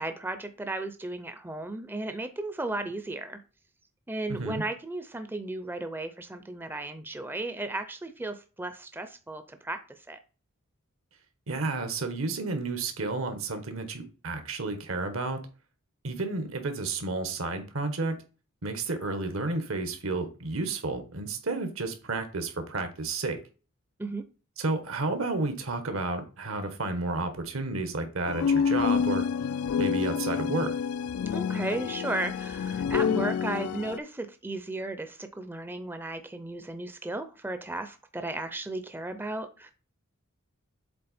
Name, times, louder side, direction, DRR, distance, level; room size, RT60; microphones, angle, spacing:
voice 1, 0.0-3.4 4.1-10.2 24.0-24.3 31.3-39.7, right 2 dB, 10° right, 9 dB, 0.5 m, -35 dB
voice 2, 4.3-4.6 11.5-15.4 16.0-18.1 18.6-23.4 24.6-29.2 29.8-30.7, right 3 dB, 75° right, 8 dB, 1.4 m, -31 dB
sound 1, 28.3-34.0, left 6 dB, 85° left, 0.3 m, -28 dB
7.7 x 3.7 x 4.2 m, 0.34 s
head